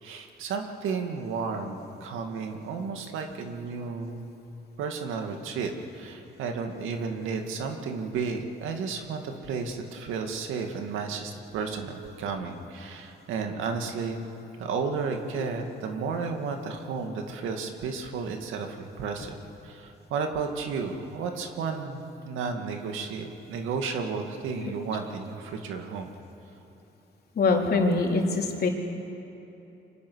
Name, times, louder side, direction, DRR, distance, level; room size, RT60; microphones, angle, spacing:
voice 1, 0.0-4.2 4.8-14.2 14.6-19.3 19.6-26.1, right 5 dB, 90° right, 4 dB, 2.3 m, -33 dB
voice 2, 27.4-28.7, left 3 dB, 55° left, 0 dB, 3.8 m, -23 dB
28.5 x 24.5 x 6.5 m, 3.0 s
cardioid pair, 90°, 20 cm